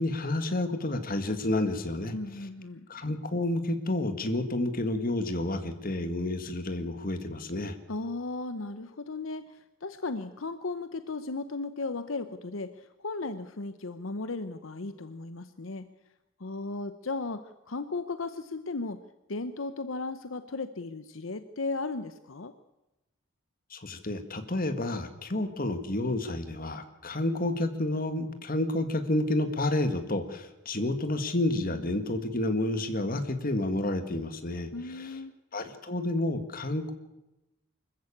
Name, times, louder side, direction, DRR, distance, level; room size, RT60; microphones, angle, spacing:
voice 1, 0.0-2.1 2.9-7.8 23.7-35.2 35.5-36.9, left 1 dB, 45° left, 9 dB, 1.9 m, -30 dB
voice 2, 2.1-2.9 7.9-15.9 16.4-19.0 19.3-22.5 34.7-35.3, left 3 dB, 70° left, 11 dB, 0.9 m, -36 dB
25.0 x 14.5 x 8.6 m, 0.96 s
head